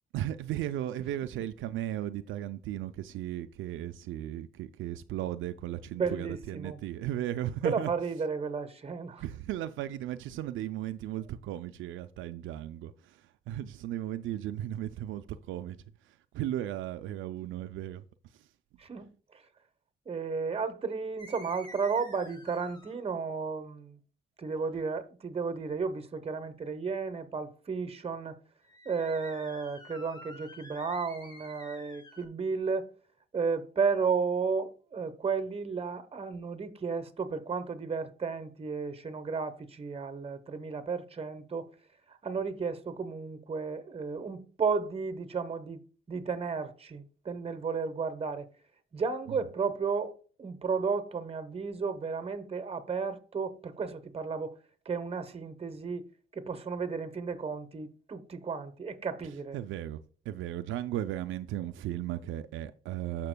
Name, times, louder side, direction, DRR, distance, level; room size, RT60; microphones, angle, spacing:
voice 1, 0.1-7.9 9.2-15.8 16.0-18.0 18.3-18.5 59.5-60.0 60.3-63.3, right 12 dB, 80° right, 0.4 m, -36 dB
voice 2, 6.0-6.8 7.6-9.2 18.8-19.4 20.1-24.0 24.4-28.4 28.8-32.9 33.3-41.7 42.1-45.8 46.1-48.5 48.9-54.6 54.8-56.0 56.3-59.6, right 5 dB, 30° right, 1.0 m, -33 dB
sound 1, 21.2-23.0 28.7-32.3, equal, 20° left, 1.6 m, -49 dB
14.0 x 5.9 x 2.2 m
cardioid pair, 90°, 20 cm